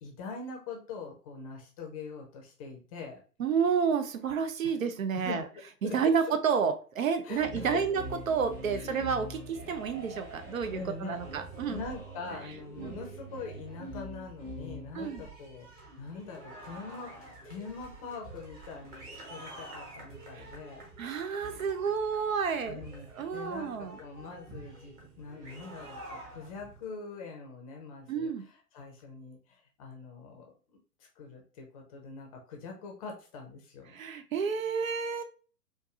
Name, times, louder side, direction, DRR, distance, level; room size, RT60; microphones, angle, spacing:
voice 1, 0.0-3.2 4.6-4.8 5.1-5.5 5.8-6.0 6.3-6.4 7.2-7.8 8.7-9.1 10.7-15.7 16.0-20.9 22.7-30.4 30.7-30.8 31.2-34.0, left 4 dB, 25° left, 1 dB, 0.6 m, -43 dB
voice 2, 3.4-5.4 5.8-11.8 12.8-13.0 14.9-15.3 20.3-20.5 21.0-22.8 23.1-24.0 28.1-28.4 33.9-35.2, right 6 dB, 60° right, 8 dB, 0.7 m, -30 dB
sound 1, 7.3-26.8, right 1 dB, 20° right, 0.9 m, -46 dB
4.5 x 2.5 x 2.4 m, 0.38 s
figure-of-eight pair, 120°, 47 cm